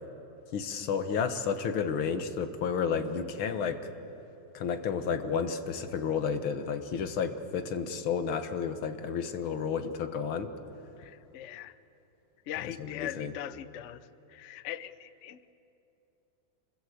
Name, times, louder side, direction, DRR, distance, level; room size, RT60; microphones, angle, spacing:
voice 1, 0.5-3.8 4.5-10.5 12.6-13.3, left 6 dB, 85° left, 9 dB, 2.1 m, -31 dB
voice 2, 11.0-11.8 12.5-15.5, left 12 dB, 70° left, 14 dB, 0.7 m, -41 dB
26.0 x 21.0 x 8.4 m, 3.0 s
omnidirectional pair, 2.2 m